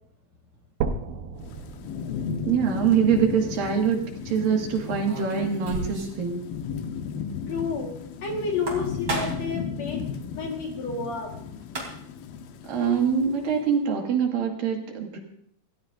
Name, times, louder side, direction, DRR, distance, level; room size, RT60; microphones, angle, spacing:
sound 1, 0.8-4.8 5.4-5.5 6.0-6.1 6.5-6.6 7.4-7.5, right 5 dB, 85° right, 2.9 m, -36 dB
Thunderstorm / Rain, 1.4-13.7, left 7 dB, 80° left, 2.7 m, -35 dB
voice 1, 2.5-6.4 12.6-15.2, right 7 dB, 70° right, 2 dB, 3.4 m, -24 dB
sound 2, 4.8-6.2 6.5-6.6 6.9-7.0 8.4-9.6 11.3-11.4 11.6-12.2, right 2 dB, 30° right, 3.7 m, -33 dB
voice 2, 7.5-8.0 8.2-10.1 10.4-11.3, left 4 dB, 55° left, 1 dB, 2.5 m, -30 dB
26.5 x 15.5 x 2.6 m, 0.67 s
omnidirectional pair, 4.3 m